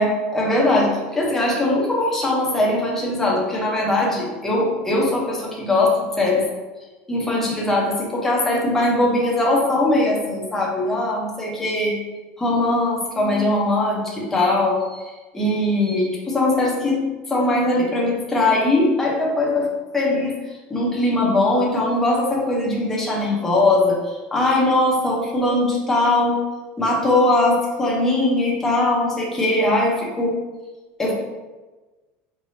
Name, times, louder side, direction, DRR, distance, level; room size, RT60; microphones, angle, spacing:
voice 1, 0.0-6.4 7.1-11.9 12.4-17.0 17.3-19.7 19.9-26.4 26.8-30.4 31.0-31.1, left 2 dB, 5° left, -4 dB, 0.8 m, -20 dB
5.2 x 3.3 x 2.7 m, 1.2 s
cardioid pair, 170°, 5 cm